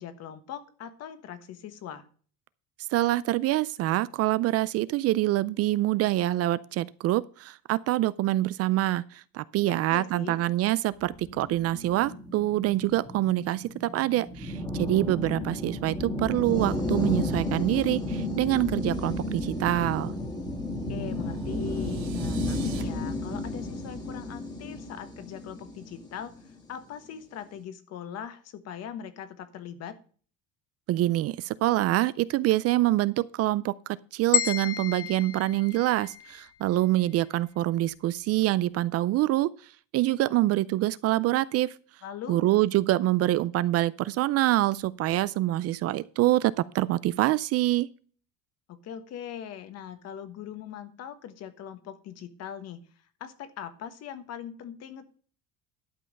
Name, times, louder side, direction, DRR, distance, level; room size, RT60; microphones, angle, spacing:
voice 1, 0.0-2.1 9.6-10.4 20.9-30.0 42.0-42.4 48.7-52.8 53.2-55.0, left 9 dB, 50° left, 1.4 m, -41 dB
voice 2, 2.9-20.2 30.9-39.5 39.9-41.7 42.3-47.9, right 16 dB, 45° right, 0.4 m, -25 dB
sound 1, 11.1-26.5, left 1 dB, 10° left, 1.9 m, -33 dB
sound 2, 20.9-22.8, right 12 dB, 90° right, 2.0 m, -48 dB
sound 3, 34.3-36.5, left 11 dB, 85° left, 1.5 m, -31 dB
12.0 x 5.5 x 6.5 m
cardioid pair, 165°, 33 cm